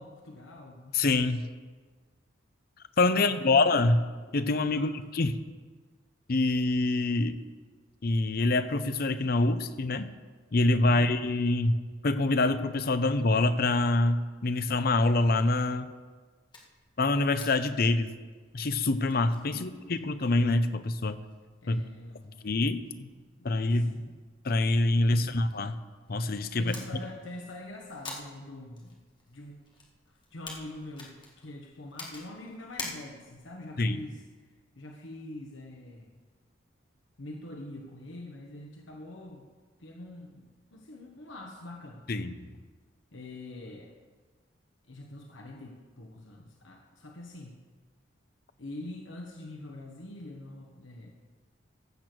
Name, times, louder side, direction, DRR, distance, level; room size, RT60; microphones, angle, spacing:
voice 1, 0.0-1.0 3.1-3.7 4.7-5.0 19.5-20.2 21.6-22.4 22.9-24.2 25.1-25.5 26.6-28.9 29.3-29.6 30.1-34.5 34.7-36.1 37.2-39.5 39.8-42.1 43.1-43.9 44.9-47.6 48.6-51.1, left 1 dB, 75° left, 1 dB, 1.2 m, -44 dB
voice 2, 0.9-1.5 3.0-4.0 4.3-5.4 6.3-7.4 8.0-10.1 10.5-11.8 12.0-15.9 17.0-18.1 18.5-21.2 21.7-21.8 22.4-22.8 23.4-23.9 24.4-25.8 26.1-26.7 33.8-34.0 42.1-42.3, left 2 dB, 50° left, 11 dB, 0.6 m, -25 dB
sound 1, 16.5-33.5, left 3 dB, 25° left, 1.7 m, -49 dB
15.0 x 6.8 x 6.1 m, 1.4 s
head